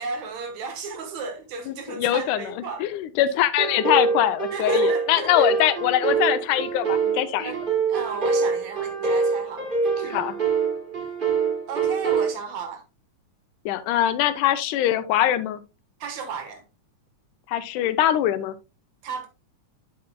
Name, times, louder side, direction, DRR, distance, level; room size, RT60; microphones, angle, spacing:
voice 1, 0.0-2.8 4.5-5.5 7.4-7.6 7.9-10.2 11.7-12.8 16.0-16.6 19.0-19.3, right 5 dB, 65° right, 2.5 m, -34 dB
voice 2, 1.7-7.5 10.1-10.3 13.7-15.6 17.5-18.6, left 12 dB, 85° left, 2.1 m, -23 dB
sound 1, 3.6-12.3, right 4 dB, 40° right, 0.7 m, -25 dB
8.1 x 7.6 x 2.2 m
omnidirectional pair, 3.6 m